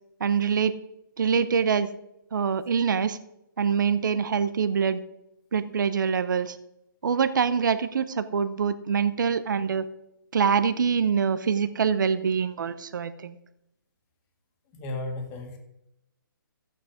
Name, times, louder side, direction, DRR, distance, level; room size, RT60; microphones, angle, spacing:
voice 1, 0.2-0.8 1.2-1.9 2.3-3.2 3.6-5.0 5.5-6.6 7.0-9.9 10.3-13.4, right 6 dB, 60° right, 13 dB, 0.9 m, -24 dB
voice 2, 14.7-15.6, left 2 dB, 20° left, 4 dB, 1.8 m, -34 dB
14.0 x 8.9 x 5.0 m, 0.84 s
hypercardioid pair, 165°, 12 cm